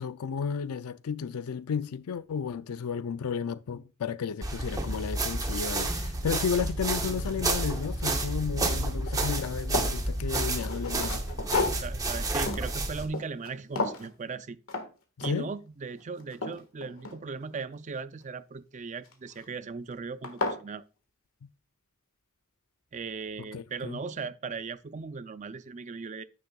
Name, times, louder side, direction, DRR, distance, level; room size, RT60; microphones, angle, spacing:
voice 1, 0.0-11.2 15.2-15.5 23.5-24.0, left 6 dB, 85° left, 0.4 m, -33 dB
sound 1, 4.4-13.0, right 2 dB, 15° right, 0.8 m, -30 dB
sound 2, 7.1-8.3 8.6-10.0 10.5-13.5 13.8-14.1 14.7-14.9 15.2-15.6 16.0-17.6 19.0-19.4 19.9-20.0 20.2-20.6, left 3 dB, 70° left, 1.6 m, -34 dB
voice 2, 11.6-14.6 15.2-20.8 22.9-26.2, right 4 dB, 35° right, 0.4 m, -38 dB
9.5 x 9.4 x 2.3 m
head